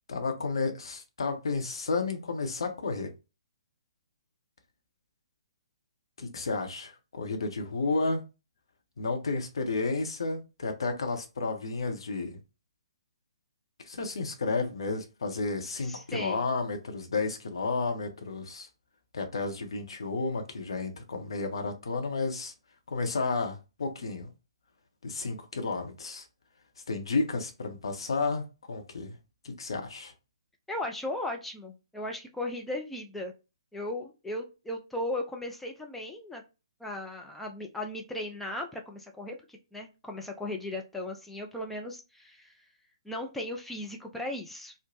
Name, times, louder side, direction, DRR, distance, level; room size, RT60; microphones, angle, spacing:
voice 1, 0.1-3.1 6.2-8.2 9.0-12.4 13.9-18.7 19.1-22.5 22.9-24.3 25.0-26.2 26.9-29.2 29.4-30.1, left 3 dB, 60° left, 0.7 m, -32 dB
voice 2, 15.8-16.5 30.7-33.3 33.7-36.4 36.8-42.6 43.0-44.7, left 1 dB, 5° left, 0.4 m, -37 dB
3.1 x 2.0 x 2.6 m
figure-of-eight pair, 130°, 3 cm